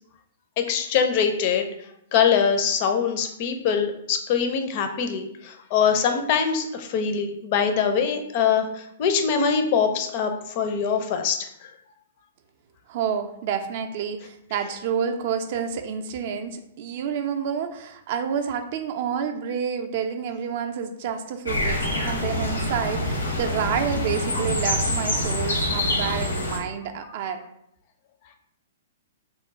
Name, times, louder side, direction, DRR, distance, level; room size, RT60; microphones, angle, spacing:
voice 1, 0.6-1.7 2.1-8.7 9.0-11.4, left 6 dB, 45° left, 6 dB, 0.4 m, -23 dB
voice 2, 12.9-27.4, right 7 dB, 50° right, 6 dB, 0.4 m, -29 dB
sound 1, 21.5-26.6, left 1 dB, 85° left, 0.8 m, -26 dB
3.0 x 2.1 x 3.6 m, 0.75 s
figure-of-eight pair, 115°, 0 cm